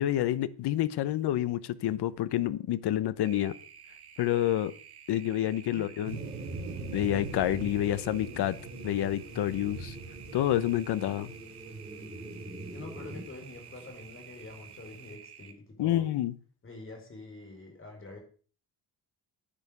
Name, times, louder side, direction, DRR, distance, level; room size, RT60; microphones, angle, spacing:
voice 1, 0.0-3.5 4.2-4.7 5.1-6.2 6.9-8.6 8.8-9.9 10.3-11.3 15.8-16.3, left 12 dB, 75° left, 1.0 m, -28 dB
sound 1, 3.2-15.5, right 9 dB, 70° right, 2.2 m, -51 dB
sound 2, 6.0-15.1, right 4 dB, 45° right, 3.2 m, -44 dB
sound 3, 6.1-13.2, right 1 dB, ahead, 6.2 m, -46 dB
voice 2, 12.7-16.1 16.6-18.2, left 2 dB, 30° left, 4.7 m, -46 dB
10.5 x 9.8 x 6.8 m
cardioid pair, 145°, 40 cm